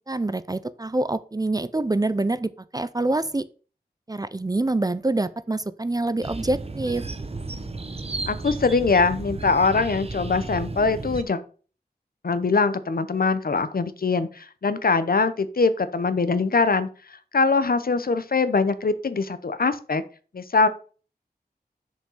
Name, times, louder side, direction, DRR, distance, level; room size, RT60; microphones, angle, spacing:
voice 1, 0.1-3.5 4.1-7.0, right 2 dB, 20° right, 15 dB, 0.5 m, -26 dB
sound 1, 6.2-11.2, right 3 dB, 35° right, 0.9 m, -33 dB
voice 2, 8.3-11.4 12.2-16.9 17.3-20.0 20.3-20.7, left 4 dB, 60° left, 13 dB, 0.8 m, -22 dB
6.9 x 5.2 x 5.6 m, 0.38 s
wide cardioid pair, 85°, 17 cm